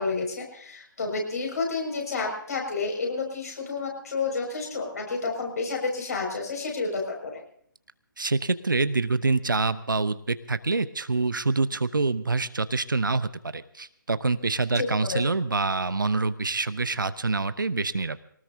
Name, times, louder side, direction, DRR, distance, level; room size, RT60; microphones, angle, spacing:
voice 1, 0.0-7.4 14.7-15.2, left 4 dB, 50° left, 1 dB, 6.1 m, -30 dB
voice 2, 8.2-18.2, right 3 dB, 70° right, 14 dB, 0.8 m, -26 dB
23.5 x 19.0 x 2.8 m, 0.64 s
figure-of-eight pair, 145°, 11 cm